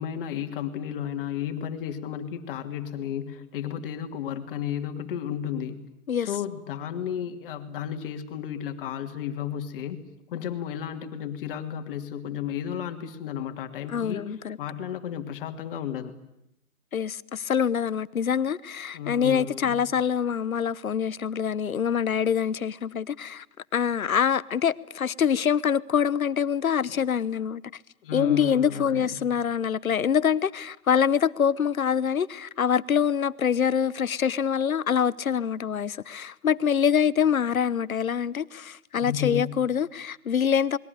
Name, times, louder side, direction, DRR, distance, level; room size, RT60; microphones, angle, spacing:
voice 1, 0.0-5.8 6.2-10.0 10.3-16.2 18.9-19.8 28.0-29.3 39.0-39.5, left 9 dB, 40° left, 2.7 m, -33 dB
voice 2, 13.9-14.6 16.9-23.4 23.7-27.6 28.1-40.8, left 8 dB, 80° left, 1.1 m, -25 dB
28.5 x 21.5 x 9.4 m
hypercardioid pair, 140°, 42 cm